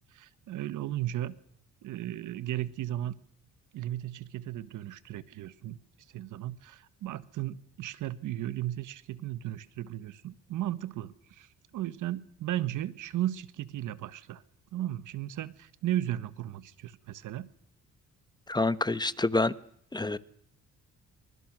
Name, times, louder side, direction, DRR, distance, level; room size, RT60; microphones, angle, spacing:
voice 1, 0.1-1.3 1.8-3.1 3.7-5.8 6.1-14.4 14.7-17.5, right 13 dB, 80° right, 1.4 m, -35 dB
voice 2, 18.5-19.5 19.9-20.2, left 2 dB, 15° left, 1.1 m, -27 dB
27.0 x 25.0 x 6.2 m
cardioid pair, 90°, 30 cm